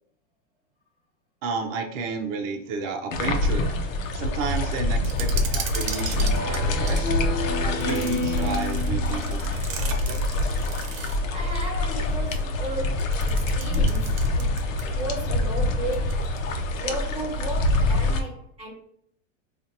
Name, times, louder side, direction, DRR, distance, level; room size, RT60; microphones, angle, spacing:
voice 1, 1.4-3.7 4.1-7.2 7.6-10.2, right 4 dB, 50° right, 0.7 m, -32 dB
sound 1, 3.1-18.2, left 2 dB, 80° left, 0.8 m, -25 dB
sound 2, 5.0-7.1 7.8-11.3 13.0-15.0 15.3-15.4 15.9-16.4, right 7 dB, 80° right, 0.8 m, -37 dB
Speech synthesizer, 6.1-9.6, left 2 dB, 60° left, 1.0 m, -31 dB
voice 2, 9.2-10.0 11.3-14.6 14.9-16.4 16.7-18.7, right 1 dB, 15° right, 1.3 m, -35 dB
3.9 x 2.5 x 2.8 m
supercardioid pair, 135°, 38 cm